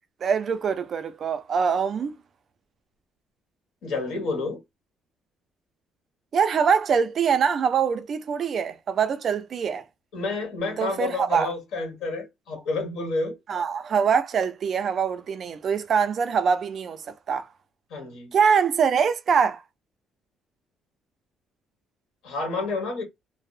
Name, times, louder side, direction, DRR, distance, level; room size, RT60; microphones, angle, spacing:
voice 1, 0.2-2.1 6.3-9.8 10.8-11.5 13.5-17.5 18.3-19.6, right 6 dB, 35° right, 0.3 m, -23 dB
voice 2, 3.8-4.6 10.1-13.4 17.9-18.4 22.2-23.0, left 3 dB, 80° left, 1.4 m, -29 dB
2.6 x 2.0 x 2.4 m
cardioid pair, 170°, 0 cm